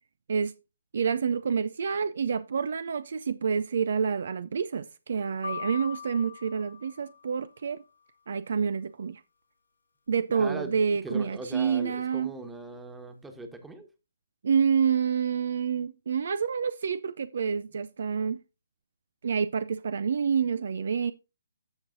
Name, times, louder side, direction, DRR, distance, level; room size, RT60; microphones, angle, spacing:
voice 1, 0.9-7.8 8.3-9.2 10.1-12.3 14.4-18.4 19.2-21.1, right 6 dB, 55° right, 0.4 m, -28 dB
sound 1, 5.4-7.6, left 6 dB, 75° left, 2.0 m, -40 dB
voice 2, 10.3-13.9, right 2 dB, 5° right, 1.3 m, -40 dB
14.0 x 5.3 x 2.6 m
figure-of-eight pair, 135°, 0 cm